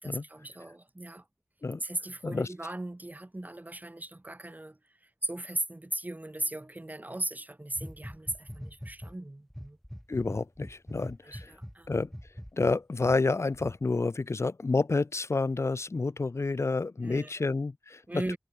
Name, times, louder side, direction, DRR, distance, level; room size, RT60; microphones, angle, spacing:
voice 1, 0.0-1.2 1.8-4.8 5.2-9.8 10.9-11.9 17.0-17.5 18.1-18.4, right 1 dB, 35° right, 3.5 m, -38 dB
sound 1, 7.8-9.1 9.5-13.2 13.5-13.7, equal, 5° left, 6.0 m, -43 dB
voice 2, 10.1-11.5 11.9-12.1 12.5-18.0, left 3 dB, 80° left, 0.8 m, -29 dB
wide cardioid pair, 55°, 5 cm